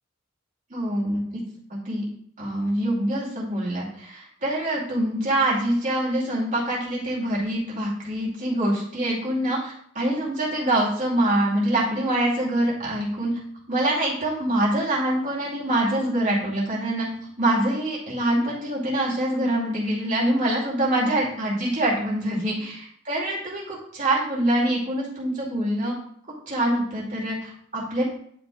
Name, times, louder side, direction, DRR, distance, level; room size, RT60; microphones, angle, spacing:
voice 1, 0.7-1.4 1.7-2.0 2.4-13.3 13.7-17.1 17.4-25.9 26.5-28.0, right 1 dB, 40° right, -5 dB, 2.5 m, -25 dB
10.5 x 5.3 x 2.4 m, 0.64 s
head